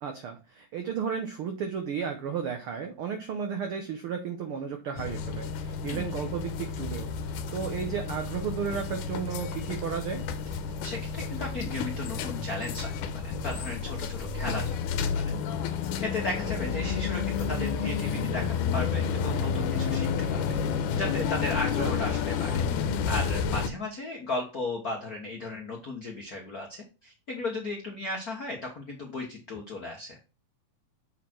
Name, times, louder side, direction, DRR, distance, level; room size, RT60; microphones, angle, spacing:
voice 1, 0.0-10.2 21.8-21.9, right 7 dB, 90° right, 5 dB, 1.2 m, -33 dB
sound 1, 5.0-23.7, left 6 dB, 85° left, 2.2 m, -30 dB
voice 2, 10.8-12.9 13.2-14.7 15.2-15.4 16.0-20.6 20.9-22.6 23.0-30.2, left 2 dB, 70° left, 0 dB, 0.8 m, -35 dB
7.2 x 4.3 x 4.5 m, 0.31 s
omnidirectional pair, 3.6 m